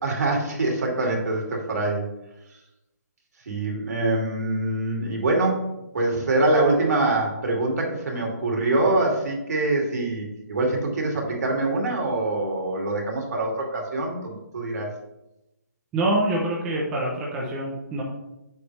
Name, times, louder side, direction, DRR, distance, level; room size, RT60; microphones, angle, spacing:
voice 1, 0.0-2.1 3.5-5.7 5.9-14.9, right 2 dB, 65° right, 0 dB, 2.7 m, -24 dB
voice 2, 15.9-18.0, right 1 dB, 10° right, -4 dB, 0.7 m, -25 dB
7.4 x 7.0 x 3.4 m, 0.92 s
hypercardioid pair, 175°, 9 cm